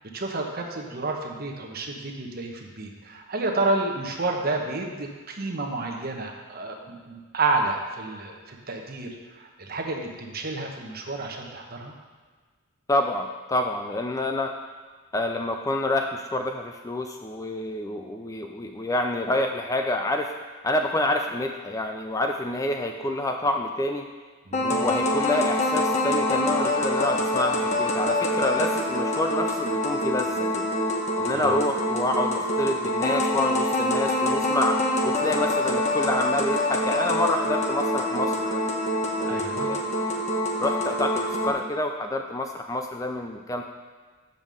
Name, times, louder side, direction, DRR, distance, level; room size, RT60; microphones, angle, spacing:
voice 1, 0.0-11.9 24.5-24.9 31.3-31.5 39.3-39.7, right 2 dB, 45° right, 1 dB, 1.0 m, -30 dB
voice 2, 12.9-14.5 15.1-20.3 20.6-24.1 24.6-30.7 31.2-38.6 39.2-39.8 40.6-43.6, left 1 dB, 15° left, 4 dB, 0.3 m, -28 dB
sound 1, 24.5-41.5, left 1 dB, 30° left, 1.0 m, -25 dB
7.2 x 5.4 x 6.3 m, 1.4 s
head